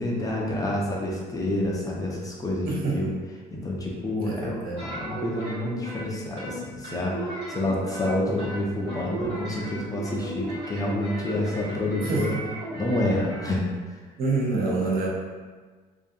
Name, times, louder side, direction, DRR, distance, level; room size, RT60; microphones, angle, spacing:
voice 1, 0.0-3.2 3.5-12.4 12.7-13.7, left 1 dB, 20° left, -3 dB, 0.5 m, -28 dB
voice 2, 2.6-3.1 4.2-4.8 12.0-12.4 14.2-15.1, right 3 dB, 60° right, -3 dB, 0.7 m, -27 dB
sound 1, 4.8-6.0 6.4-8.1 8.4-13.5, right 2 dB, 80° right, 1.2 m, -35 dB
2.5 x 2.3 x 2.6 m, 1.4 s
cardioid pair, 110°, 17 cm